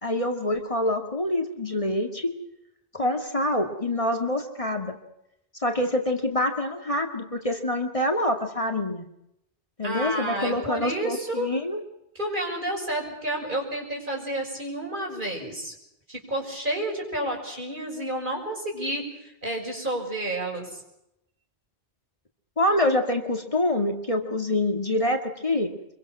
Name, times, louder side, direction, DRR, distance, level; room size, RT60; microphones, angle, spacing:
voice 1, 0.0-2.3 2.9-5.0 5.6-9.1 9.8-11.8 22.6-25.7, left 1 dB, 35° left, 4 dB, 2.1 m, -26 dB
voice 2, 9.8-11.5 12.1-15.7 16.1-20.8, right 1 dB, 50° right, 1 dB, 6.4 m, -30 dB
26.0 x 23.0 x 6.1 m, 0.82 s
omnidirectional pair, 1.1 m